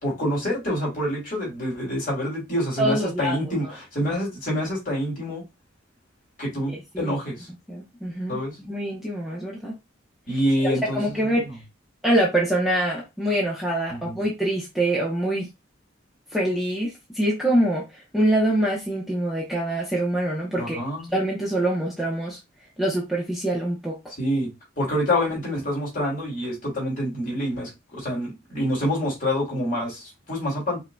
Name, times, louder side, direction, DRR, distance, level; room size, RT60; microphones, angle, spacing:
voice 1, 0.0-5.4 6.4-7.5 8.3-8.6 10.3-11.0 11.4-11.6 13.9-14.2 20.6-21.1 24.2-30.8, equal, 40° left, 2.7 m, -27 dB
voice 2, 2.8-3.4 3.6-3.7 6.9-7.1 7.7-8.4 8.7-9.7 10.3-11.4 12.0-15.5 16.3-20.8 21.1-22.4 22.8-24.0, right 1 dB, ahead, 0.9 m, -25 dB
5.4 x 2.8 x 2.3 m
head